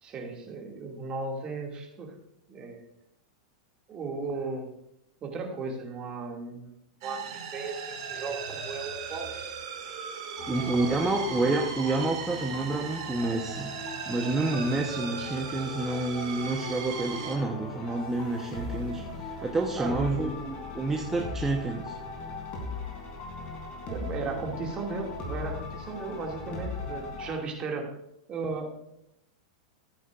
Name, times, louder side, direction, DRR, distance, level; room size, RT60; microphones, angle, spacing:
voice 1, 0.0-2.1 2.5-2.8 3.9-4.7 5.2-6.7 7.0-9.4 10.5-11.2 19.0-19.3 19.7-20.4 23.9-27.9 28.3-28.8, right 4 dB, 30° right, 1 dB, 2.4 m, -36 dB
sound 1, 7.0-17.4, right 6 dB, 60° right, 2.1 m, -38 dB
sound 2, 10.4-27.3, left 3 dB, 40° left, 3.4 m, -39 dB
voice 2, 10.5-13.7 14.1-21.9, right 2 dB, 10° right, 1 dB, 1.0 m, -29 dB
13.5 x 9.2 x 2.6 m, 0.79 s
hypercardioid pair, 100°, 3 cm